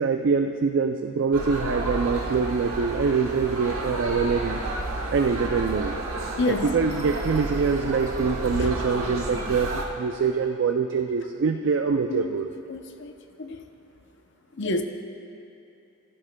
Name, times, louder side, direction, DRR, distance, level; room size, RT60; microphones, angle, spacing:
voice 1, 0.0-4.6 5.1-5.9 6.5-12.5, right 5 dB, 60° right, 5 dB, 0.4 m, -24 dB
sound 1, 1.3-9.9, right 2 dB, 75° right, 1.1 m, -31 dB
voice 2, 6.4-6.7 8.5-8.7 12.1-12.3 12.7-13.1 13.4-13.6 14.6-14.8, left 3 dB, 55° left, 6 dB, 0.7 m, -28 dB
16.0 x 12.0 x 2.2 m, 2.8 s
head